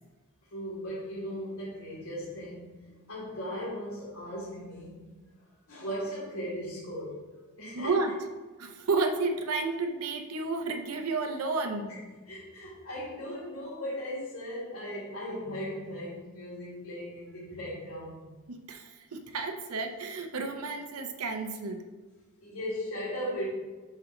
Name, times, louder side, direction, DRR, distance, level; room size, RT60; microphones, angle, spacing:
voice 1, 0.5-5.1 5.7-7.2 7.6-8.0 11.8-12.0 12.2-18.3 22.4-23.5, equal, 75° left, -9 dB, 1.6 m, -37 dB
voice 2, 7.7-8.1 8.6-11.8 18.5-21.8, right 3 dB, 85° right, 5 dB, 0.7 m, -31 dB
6.5 x 3.2 x 5.1 m, 1.3 s
head